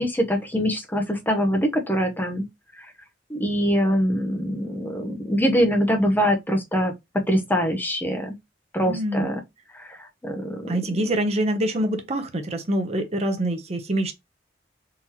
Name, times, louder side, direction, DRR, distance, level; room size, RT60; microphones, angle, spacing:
voice 1, 0.0-2.4 2.8-2.9 3.3-6.9 7.3-8.3 8.7-9.4 9.7-11.0, equal, 10° left, 0.6 m, -24 dB
voice 2, 8.9-9.3 10.7-14.1, right 1 dB, 35° right, 0.6 m, -25 dB
3.7 x 2.9 x 2.8 m
head